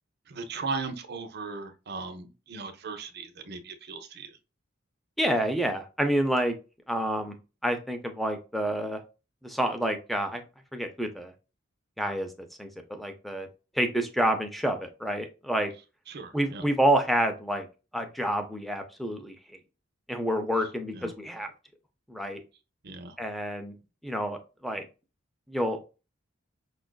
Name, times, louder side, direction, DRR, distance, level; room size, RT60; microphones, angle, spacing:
voice 1, 0.3-4.3 16.1-16.6 20.9-21.1 22.8-23.2, right 4 dB, 55° right, 7 dB, 0.6 m, -37 dB
voice 2, 5.2-6.6 6.9-7.4 7.6-9.0 9.4-10.4 10.7-11.3 12.0-13.5 13.7-15.7 16.3-17.7 17.9-19.4 20.1-21.5 22.1-22.4 23.2-23.7 24.0-24.9 25.5-25.8, right 1 dB, ahead, 6 dB, 0.5 m, -28 dB
5.3 x 2.4 x 2.2 m, 0.31 s
head